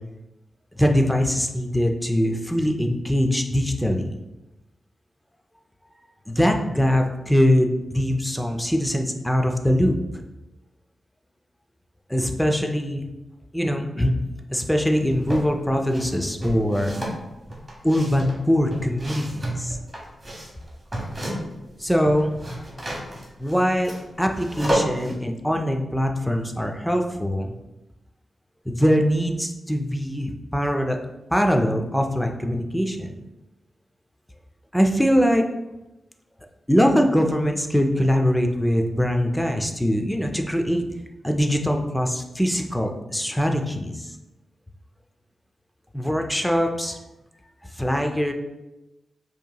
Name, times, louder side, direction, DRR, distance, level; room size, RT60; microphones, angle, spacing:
voice 1, 0.8-4.1 6.3-9.9 12.1-13.1 13.5-14.1 14.5-17.0 17.8-19.8 21.8-22.4 23.4-23.9 24.2-27.5 28.7-31.0 31.3-33.1 34.7-35.4 36.7-40.8 41.2-44.2 45.9-47.0 47.7-48.3, equal, 5° left, 3 dB, 0.4 m, -22 dB
sound 1, 14.8-15.5 15.9-21.7 21.9-25.1, right 1 dB, 15° right, 1.1 m, -31 dB
5.3 x 2.9 x 2.3 m, 0.99 s
wide cardioid pair, 95°, 0 cm